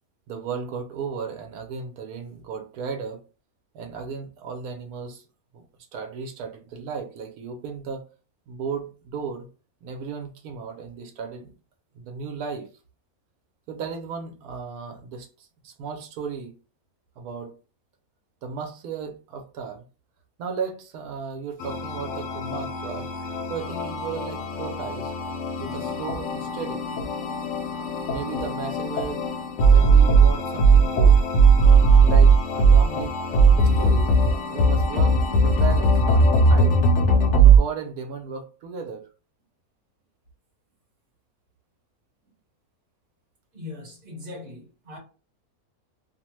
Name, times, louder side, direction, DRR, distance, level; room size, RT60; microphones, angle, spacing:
voice 1, 0.3-3.2 3.7-5.3 5.5-5.6 5.9-8.0 8.5-9.5 9.8-11.5 11.9-12.7 13.7-16.5 17.2-17.5 18.4-19.8 20.4-23.1 23.5-25.1 25.6-26.9 28.1-29.2 29.7-31.2 32.0-33.1 33.4-34.1 34.5-36.8 37.3-39.0, right 6 dB, 90° right, 1.1 m, -35 dB
sound 1, 21.6-37.6, right 3 dB, 65° left, 0.8 m, -19 dB
voice 2, 43.5-45.0, left 3 dB, 40° right, 1.3 m, -40 dB
2.8 x 2.0 x 3.0 m
omnidirectional pair, 1.5 m